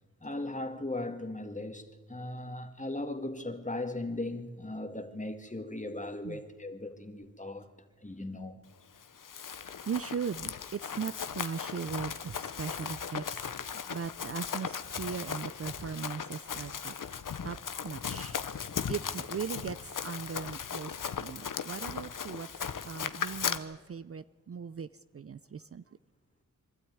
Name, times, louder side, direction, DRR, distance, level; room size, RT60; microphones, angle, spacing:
voice 1, 0.2-7.7 8.0-8.6 13.6-13.7, left 2 dB, 25° left, 6 dB, 2.1 m, -38 dB
Run, 9.0-23.6, left 7 dB, 75° left, 1.0 m, -37 dB
voice 2, 9.9-16.9 17.4-17.6 17.8-18.4 18.9-19.8 20.0-22.5 22.8-24.9 25.1-25.8, right 6 dB, 45° right, 15 dB, 0.5 m, -38 dB
25.0 x 12.5 x 9.4 m, 1.4 s
wide cardioid pair, 65°, 32 cm